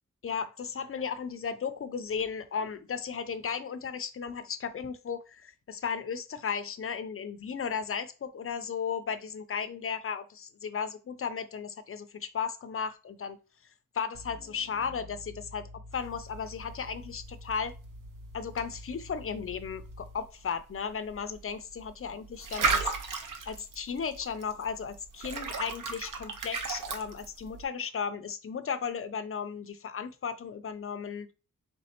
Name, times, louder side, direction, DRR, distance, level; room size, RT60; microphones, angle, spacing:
voice 1, 0.2-13.4 13.9-17.7 18.3-22.8 23.5-31.3, left 6 dB, 40° left, 0.4 m, -35 dB
sound 1, 14.1-20.3, left 1 dB, 35° right, 0.4 m, -47 dB
sound 2, 15.9-27.6, right 5 dB, 70° right, 0.7 m, -37 dB
4.2 x 3.2 x 2.8 m
wide cardioid pair, 165°, 33 cm